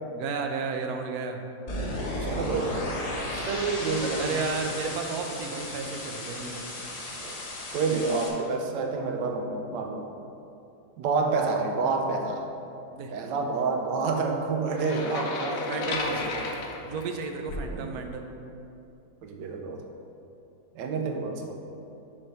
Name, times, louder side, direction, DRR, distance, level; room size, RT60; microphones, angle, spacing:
voice 1, 0.1-1.4 4.2-6.6 12.9-13.1 15.6-16.2 16.8-18.3, right 5 dB, 70° right, 4 dB, 1.0 m, -33 dB
sound 1, 1.7-8.3, left 1 dB, 60° left, 0.4 m, -34 dB
voice 2, 2.2-2.8 3.3-4.4 7.2-7.3 7.7-10.0 11.0-12.5 13.1-15.7 16.1-16.3 17.6-17.9 19.2-19.8 20.7-21.6, right 4 dB, 85° right, 3 dB, 1.4 m, -28 dB
sound 2, 14.8-17.8, left 3 dB, 85° left, 1.4 m, -33 dB
7.2 x 3.3 x 5.5 m, 2.7 s
omnidirectional pair, 1.9 m